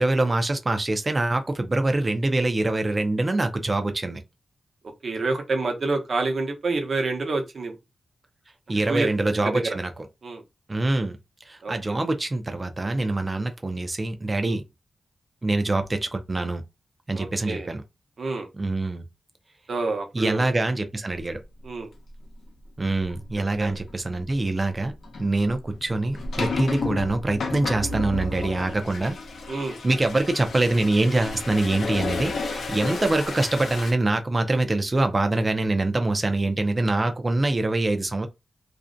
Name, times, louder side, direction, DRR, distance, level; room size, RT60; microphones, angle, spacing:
voice 1, 0.0-4.2 8.7-9.9 10.7-11.2 11.5-14.6 15.4-16.6 17.1-17.8 18.5-19.0 20.1-21.4 22.8-24.9 25.2-29.2 29.5-38.3, right 2 dB, 25° right, 0.4 m, -24 dB
voice 2, 5.0-7.7 8.9-9.1 9.5-9.8 10.2-10.4 11.6-11.7 17.1-17.7 18.2-18.5 19.7-20.5 21.6-21.9 23.6-23.7 29.5-29.8, right 3 dB, 60° right, 0.7 m, -27 dB
sound 1, 23.1-23.2 23.7-23.9 25.0-33.9, left 3 dB, 85° left, 0.6 m, -32 dB
2.4 x 2.1 x 2.5 m
wide cardioid pair, 100°, 0 cm